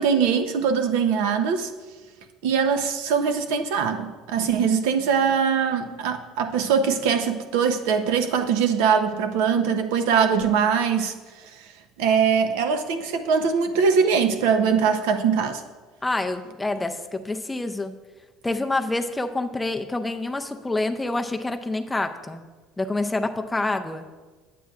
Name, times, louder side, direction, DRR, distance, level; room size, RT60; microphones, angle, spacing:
voice 1, 0.0-1.7 2.4-11.1 12.0-15.6, right 6 dB, 90° right, 7 dB, 0.6 m, -22 dB
voice 2, 16.0-17.9 18.4-22.4 22.8-24.1, left 2 dB, 10° left, 6 dB, 0.4 m, -27 dB
8.4 x 8.3 x 2.4 m, 1.3 s
cardioid pair, 130°, 0 cm